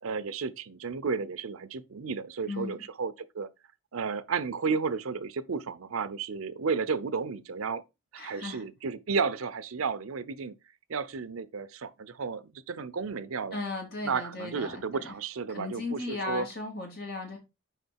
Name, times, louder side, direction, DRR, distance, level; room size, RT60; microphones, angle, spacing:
voice 1, 0.0-3.5 3.9-7.8 8.1-10.5 10.9-13.6 14.0-16.5, right 5 dB, 80° right, 0.6 m, -33 dB
voice 2, 2.5-2.8 8.2-8.6 13.5-15.1 15.5-17.4, left 3 dB, 45° left, 2.8 m, -36 dB
6.6 x 4.9 x 4.5 m
head